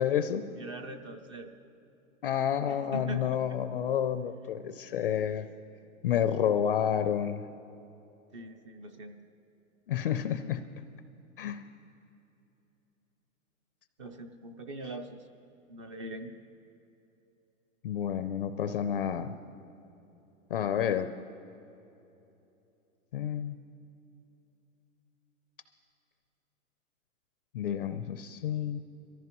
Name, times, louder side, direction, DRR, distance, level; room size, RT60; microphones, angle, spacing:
voice 1, 0.0-0.5 2.2-5.5 6.0-7.4 9.9-10.6 11.4-11.6 17.8-19.3 20.5-21.1 23.1-23.6 27.5-28.8, left 9 dB, 40° left, 10 dB, 0.4 m, -29 dB
voice 2, 0.6-1.5 2.9-3.4 8.3-9.2 14.0-15.2 15.7-16.3, right 1 dB, 25° right, 8 dB, 0.4 m, -41 dB
23.0 x 14.5 x 3.0 m, 2.9 s
hypercardioid pair, 155°, 42 cm